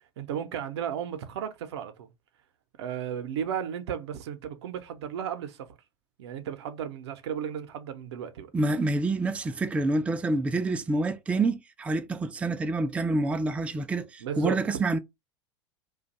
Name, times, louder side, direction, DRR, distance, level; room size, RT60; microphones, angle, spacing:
voice 1, 0.2-2.1 2.8-5.7 6.2-8.5 14.2-14.6, right 8 dB, 70° right, 0.6 m, -34 dB
voice 2, 8.5-15.0, right 2 dB, 10° right, 0.3 m, -27 dB
2.5 x 2.2 x 4.0 m
hypercardioid pair, 85°, 15 cm